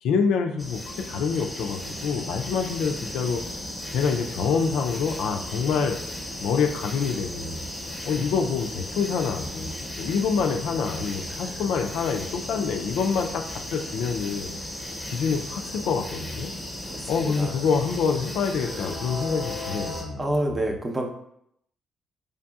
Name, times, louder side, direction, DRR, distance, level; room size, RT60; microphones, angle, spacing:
voice 1, 0.0-3.4 3.9-6.0 6.4-7.6 8.0-14.6 15.1-16.5 17.1-20.6, left 5 dB, 85° left, 5 dB, 0.3 m, -26 dB
sound 1, 0.6-20.0, left 1 dB, 5° left, 0.9 m, -35 dB
voice 2, 11.3-11.6 16.9-17.6 18.6-19.0 20.2-21.1, right 1 dB, 25° right, 2 dB, 0.6 m, -29 dB
4.9 x 2.7 x 2.3 m, 0.73 s
cardioid pair, 90°, 0 cm